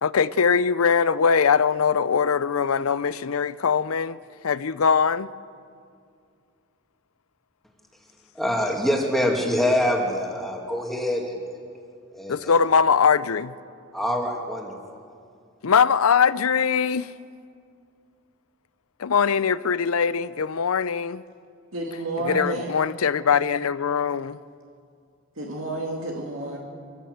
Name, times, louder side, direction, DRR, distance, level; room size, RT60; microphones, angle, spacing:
voice 1, 0.0-4.2 4.4-5.3 12.3-13.5 15.6-17.1 19.0-21.2 22.2-24.4, left 6 dB, 90° left, 0.6 m, -21 dB
voice 2, 8.3-11.4 12.1-12.5 13.9-14.7, left 1 dB, ahead, 2.4 m, -25 dB
voice 3, 21.7-22.8 25.4-26.6, right 1 dB, 70° right, 2.3 m, -30 dB
25.0 x 15.0 x 7.9 m
head